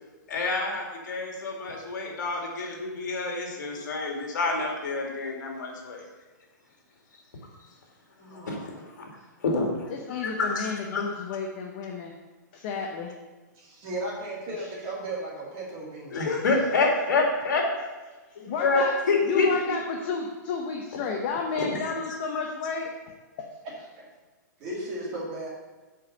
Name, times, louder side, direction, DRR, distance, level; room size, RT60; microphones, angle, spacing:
voice 1, 0.3-6.0 8.3-8.6 9.4-11.1 16.1-17.6 18.6-19.5 21.6-22.2, left 3 dB, 70° left, 0 dB, 2.3 m, -27 dB
voice 2, 8.2-8.8 13.5-16.2 23.6-24.0 24.6-25.5, right 1 dB, 25° right, -4 dB, 2.3 m, -36 dB
voice 3, 9.9-12.1 12.5-13.1 14.6-14.7 18.5-19.0 19.2-22.9, left 5 dB, 30° left, 2 dB, 0.7 m, -31 dB
7.8 x 5.1 x 6.8 m, 1.3 s
hypercardioid pair, 175°, 10 cm